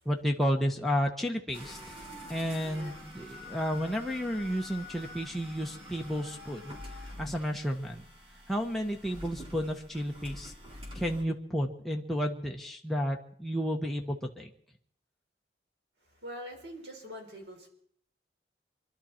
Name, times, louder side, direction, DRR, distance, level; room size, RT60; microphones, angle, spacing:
voice 1, 0.0-1.8 2.3-6.7 7.2-8.0 8.5-10.5 10.9-14.5, equal, ahead, 0 dB, 1.1 m, -32 dB
sound 1, 1.5-11.2, left 1 dB, 30° right, 3.8 m, -46 dB
voice 2, 2.6-3.0 16.2-17.7, equal, 80° right, 1 dB, 4.8 m, -44 dB
25.5 x 12.0 x 4.4 m, 0.62 s
head